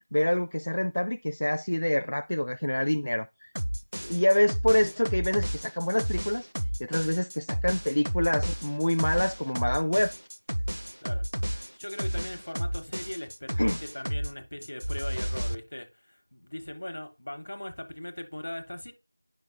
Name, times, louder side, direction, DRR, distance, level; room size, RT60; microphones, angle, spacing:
voice 1, 0.1-3.5 4.1-6.5 6.8-10.1 13.6-13.8, left 1 dB, 60° left, 0.3 m, -26 dB
sound 1, 3.6-14.3 14.6-15.6, equal, 75° right, 0.5 m, -32 dB
voice 2, 11.0-18.9, left 1 dB, 40° left, 1.1 m, -40 dB
10.0 x 5.8 x 2.2 m
figure-of-eight pair, 175°, 0 cm